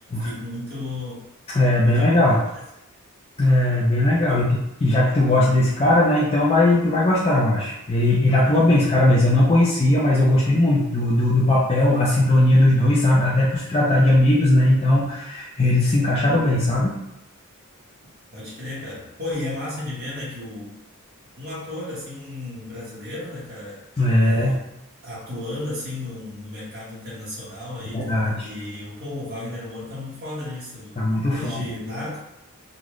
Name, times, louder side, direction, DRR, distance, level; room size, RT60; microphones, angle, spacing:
voice 1, 0.1-1.3 1.8-2.4 4.3-4.5 18.3-20.8 21.4-23.8 24.2-24.6 25.0-28.1 28.4-32.2, left 2 dB, 45° right, -8 dB, 1.4 m, -34 dB
voice 2, 1.5-2.4 3.4-4.5 4.8-17.0 24.0-24.6 27.9-28.5 31.0-31.6, left 1 dB, 25° left, -6 dB, 0.6 m, -18 dB
4.0 x 2.3 x 3.1 m, 0.84 s
head